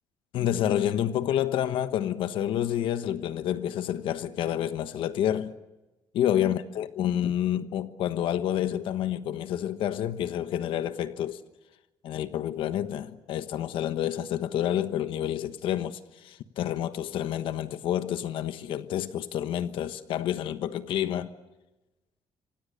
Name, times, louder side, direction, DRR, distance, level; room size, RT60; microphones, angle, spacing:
voice 1, 0.3-5.5 6.1-11.4 12.0-21.3, left 11 dB, 80° left, 1.2 m, -29 dB
27.5 x 25.5 x 6.7 m
cardioid pair, 180°, 9 cm